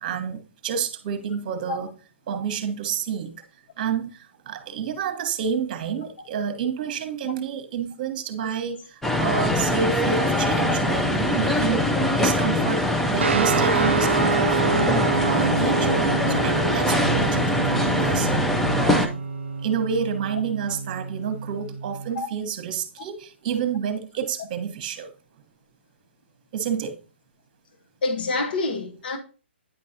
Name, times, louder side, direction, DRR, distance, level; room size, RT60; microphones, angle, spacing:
voice 1, 0.0-1.9 2.3-3.3 3.8-14.9 15.2-18.3 18.7-19.2 19.6-25.1 26.5-26.9, right 7 dB, 40° right, 1.2 m, -29 dB
sound 1, 9.0-19.1, left 1 dB, 5° left, 0.5 m, -23 dB
sound 2, 13.2-22.1, right 5 dB, 75° right, 0.4 m, -27 dB
voice 2, 28.0-29.2, left 3 dB, 55° left, 1.1 m, -27 dB
9.3 x 5.3 x 2.7 m
hypercardioid pair, 140°, 6 cm